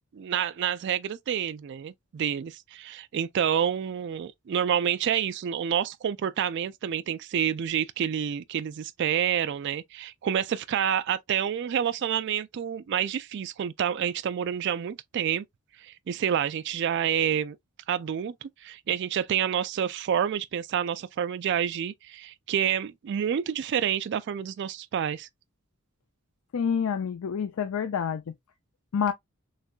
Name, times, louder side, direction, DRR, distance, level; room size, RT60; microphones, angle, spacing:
voice 1, 0.1-15.4 15.8-17.6 17.9-25.3, right 9 dB, 55° right, 0.3 m, -28 dB
voice 2, 26.5-28.3 28.9-29.1, left 7 dB, 85° left, 0.4 m, -28 dB
6.4 x 2.2 x 2.3 m
head